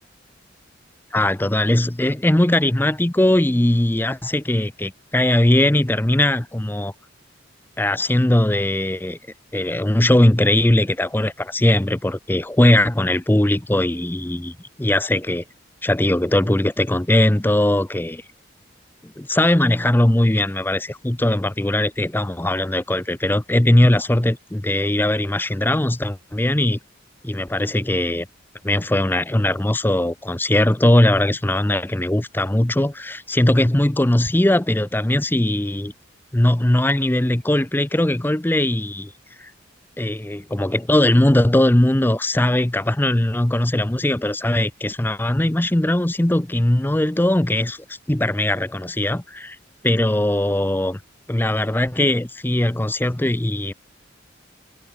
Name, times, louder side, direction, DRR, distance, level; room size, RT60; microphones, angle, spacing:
voice 1, 1.1-6.9 7.8-9.2 9.5-15.4 15.8-18.2 19.0-26.8 27.2-28.3 28.6-35.9 36.3-39.1 39.4-39.5 40.0-49.6 49.8-51.0 51.3-53.7, left 1 dB, 10° left, 0.5 m, -19 dB
head